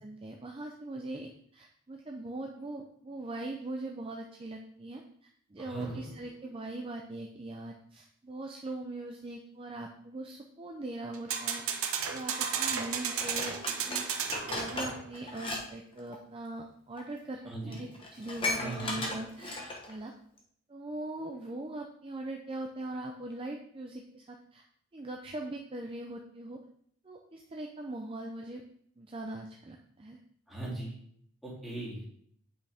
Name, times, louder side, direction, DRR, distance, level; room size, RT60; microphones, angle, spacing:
voice 1, 0.0-11.6 12.1-13.6 13.9-17.4 17.7-20.1 20.7-24.6 24.9-26.6 27.0-28.6 29.0-30.2, right 2 dB, 25° right, 1 dB, 0.5 m, -41 dB
voice 2, 5.6-6.1 17.5-17.9 18.6-18.9 30.5-30.9 31.4-32.0, right 2 dB, ahead, -8 dB, 2.4 m, -39 dB
sound 1, 5.8-6.3 11.1-15.2, right 7 dB, 65° right, 0.9 m, -34 dB
Dishes pots and pans, 13.2-15.6 15.9-16.2 17.0-17.1 17.4-17.5 17.7-19.9 20.4-20.5, left 2 dB, 25° left, 1.1 m, -36 dB
8.6 x 5.3 x 3.4 m, 0.66 s
head